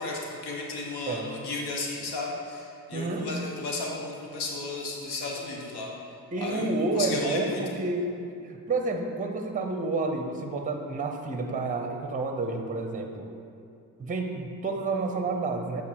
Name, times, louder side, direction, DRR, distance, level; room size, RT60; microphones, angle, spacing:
voice 1, 0.0-5.9 6.4-6.7 6.9-7.6, left 3 dB, 65° left, -1 dB, 1.4 m, -34 dB
voice 2, 2.9-3.3 6.3-8.1 8.4-13.3 14.0-15.8, right 3 dB, 20° right, 4 dB, 0.8 m, -30 dB
8.6 x 4.0 x 4.7 m, 2.4 s
supercardioid pair, 60°, 42 cm